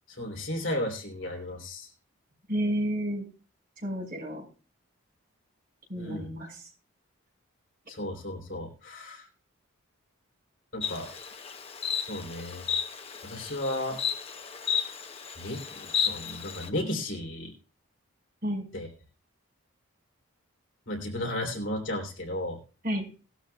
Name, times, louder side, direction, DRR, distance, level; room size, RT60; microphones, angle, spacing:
voice 1, 0.2-1.9 6.0-6.3 7.9-9.3 10.7-11.1 12.1-12.6 13.2-14.0 15.4-17.5 18.7-18.9 20.9-22.6, left 1 dB, 60° left, 2 dB, 3.2 m, -34 dB
voice 2, 2.5-3.3 3.8-4.4 5.9-6.6 18.4-18.7 22.8-23.1, equal, 45° right, 1 dB, 5.2 m, -31 dB
Insect, 10.8-16.7, left 7 dB, 25° left, 0.8 m, -33 dB
18.5 x 12.5 x 2.3 m, 0.36 s
head